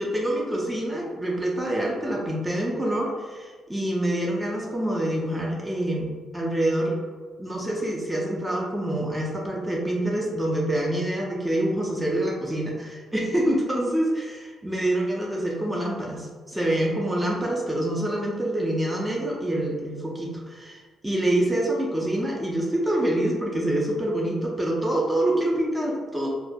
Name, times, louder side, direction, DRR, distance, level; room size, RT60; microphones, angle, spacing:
voice 1, 0.0-3.1 3.4-7.0 7.4-26.3, right 1 dB, 10° right, -3 dB, 0.4 m, -26 dB
2.3 x 2.1 x 2.6 m, 1.4 s
cardioid pair, 105°, 0 cm